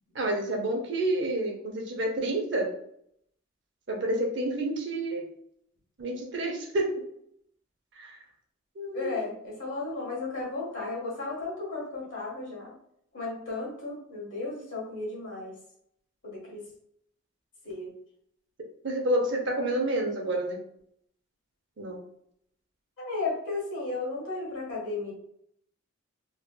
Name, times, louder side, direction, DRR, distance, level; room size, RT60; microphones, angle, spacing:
voice 1, 0.1-2.7 3.9-5.3 6.0-6.9 8.0-8.2 8.8-9.1 18.8-20.6 21.8-22.0, right 1 dB, 55° right, 1 dB, 0.7 m, -29 dB
voice 2, 8.9-12.7 13.1-15.5 16.2-16.6 17.6-17.9 23.0-25.1, left 3 dB, 65° left, -4 dB, 1.4 m, -34 dB
3.1 x 2.9 x 2.2 m, 0.70 s
head